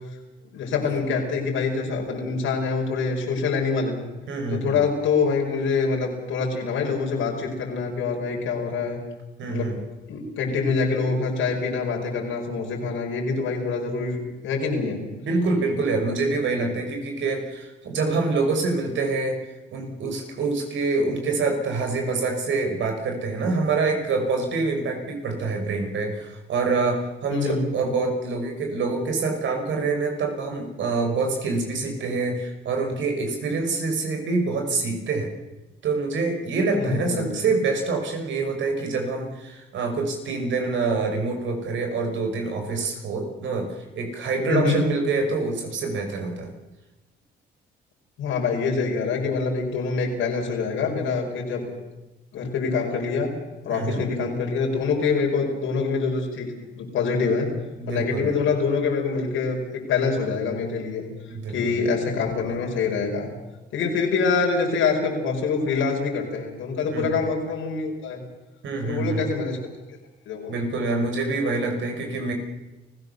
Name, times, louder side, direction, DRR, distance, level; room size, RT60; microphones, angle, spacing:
voice 1, 0.5-4.0 4.5-9.0 9.4-9.7 10.1-15.0 27.3-27.6 36.7-37.3 44.5-44.8 48.2-51.6 52.3-53.3 53.6-57.5 57.9-61.1 61.5-63.3 63.7-68.2 68.8-69.6 70.3-70.5, left 4 dB, 85° left, 0 dB, 5.7 m, -25 dB
voice 2, 4.3-4.8 9.4-9.8 15.1-19.4 19.7-35.3 35.8-46.5 53.7-54.0 57.8-58.4 61.3-61.9 66.8-67.2 68.6-69.2 70.5-72.3, right 3 dB, 70° right, 3 dB, 5.8 m, -26 dB
29.5 x 16.0 x 6.9 m, 1.1 s
cardioid pair, 90°, 20 cm